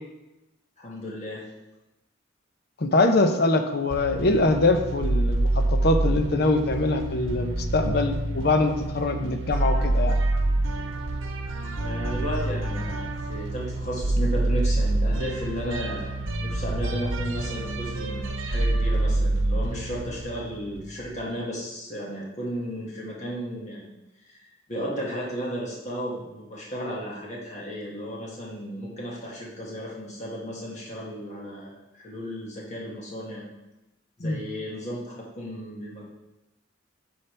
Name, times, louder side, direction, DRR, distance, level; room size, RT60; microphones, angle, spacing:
voice 1, 0.8-1.4 11.8-23.9 24.3-24.4 24.7-33.4 34.2-36.0, equal, 35° left, -4 dB, 1.8 m, -34 dB
voice 2, 2.8-10.2 34.2-34.4, left 2 dB, 55° left, 6 dB, 0.6 m, -23 dB
sound 1, 3.9-21.2, right 2 dB, 90° right, 0.8 m, -27 dB
9.8 x 5.6 x 3.3 m, 0.98 s
head